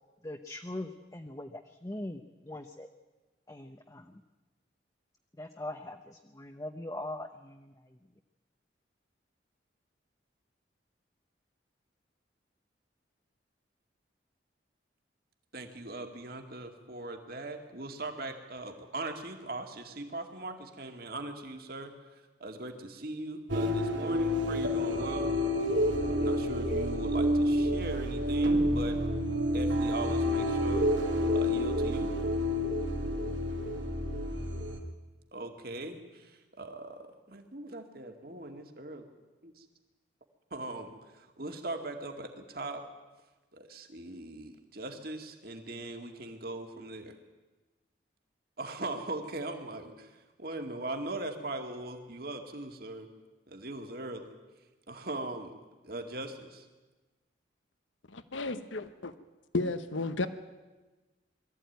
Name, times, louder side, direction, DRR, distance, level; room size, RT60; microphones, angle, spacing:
voice 1, 0.2-2.9 3.5-4.1 5.4-7.7, left 1 dB, 20° left, 5 dB, 0.8 m, -41 dB
voice 2, 15.5-21.9 22.4-25.3 26.0-29.1 29.5-30.9 31.3-32.1 35.3-39.0 39.4-39.6 40.5-42.8 43.5-47.1 48.6-50.1 50.4-53.1 53.5-54.2 54.9-55.5 55.8-56.7, right 2 dB, 50° right, 5 dB, 2.2 m, -40 dB
sound 1, 23.5-34.8, equal, 85° right, 2.7 m, -29 dB
voice 3, 58.1-59.1 59.5-60.3, left 2 dB, 90° left, 11 dB, 1.1 m, -33 dB
22.5 x 14.0 x 9.3 m, 1.2 s
head